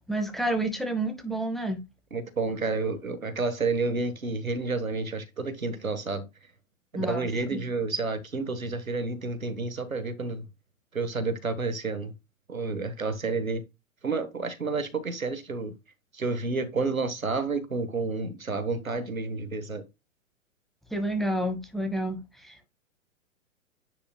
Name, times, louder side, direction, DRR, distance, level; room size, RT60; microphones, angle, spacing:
voice 1, 0.1-1.8 6.9-7.6 20.9-22.7, right 1 dB, ahead, 1.3 m, -30 dB
voice 2, 2.1-6.2 6.9-10.5 10.9-12.1 12.5-13.6 14.0-15.7 16.1-19.8, right 3 dB, 90° right, 1.5 m, -30 dB
9.8 x 5.0 x 2.3 m
figure-of-eight pair, 110°, 40 cm